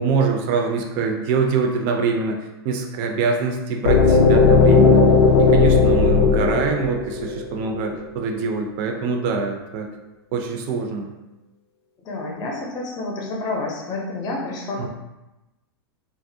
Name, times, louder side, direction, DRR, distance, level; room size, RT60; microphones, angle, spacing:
voice 1, 0.0-2.4 2.6-5.0 5.4-9.9 10.3-11.1 14.8-14.9, right 4 dB, 50° right, 3 dB, 0.4 m, -24 dB
sound 1, 3.9-7.8, left 4 dB, 80° left, 0.4 m, -15 dB
voice 2, 12.0-14.9, left 2 dB, 30° left, -1 dB, 0.6 m, -29 dB
2.4 x 2.0 x 2.6 m, 0.97 s
hypercardioid pair, 120°, 13 cm